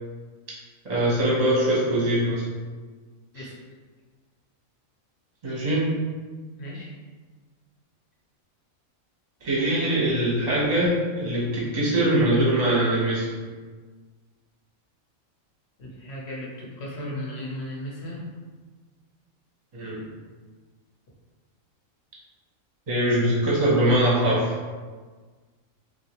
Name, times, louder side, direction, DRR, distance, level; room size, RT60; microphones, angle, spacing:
voice 1, 0.8-2.4 3.3-3.4 5.4-5.9 9.4-13.3 19.7-20.0 22.9-24.5, right 1 dB, 35° right, -6 dB, 0.9 m, -22 dB
voice 2, 6.6-6.9 15.8-18.2, left 1 dB, 55° left, -4 dB, 1.1 m, -35 dB
3.7 x 2.6 x 3.0 m, 1.4 s
omnidirectional pair, 1.4 m